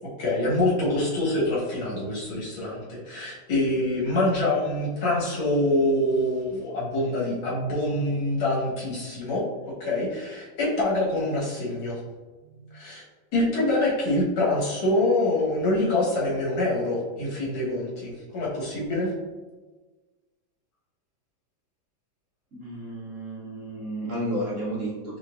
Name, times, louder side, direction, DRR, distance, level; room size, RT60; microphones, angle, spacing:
voice 1, 0.0-12.0 12.7-13.0 13.3-19.1, left 1 dB, 90° left, -6 dB, 2.2 m, -25 dB
voice 2, 22.5-25.2, right 1 dB, 55° right, -6 dB, 0.9 m, -32 dB
5.6 x 3.0 x 2.5 m, 1.3 s
omnidirectional pair, 2.2 m